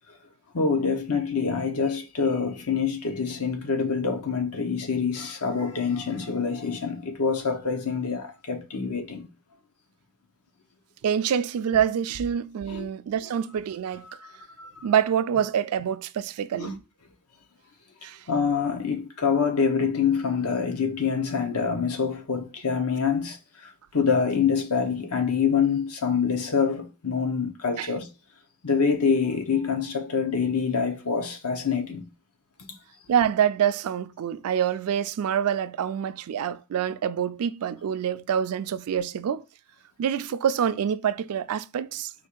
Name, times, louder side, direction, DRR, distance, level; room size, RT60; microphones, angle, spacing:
voice 1, 0.5-9.3 12.7-12.9 14.6-14.7 16.5-16.8 18.3-23.4 23.9-28.1 28.6-32.0, left 6 dB, 80° left, 0.9 m, -26 dB
voice 2, 11.0-14.1 14.8-16.8 18.0-18.2 27.8-27.9 33.1-39.4 40.0-42.1, right 8 dB, 75° right, 0.3 m, -26 dB
4.4 x 2.4 x 4.5 m
head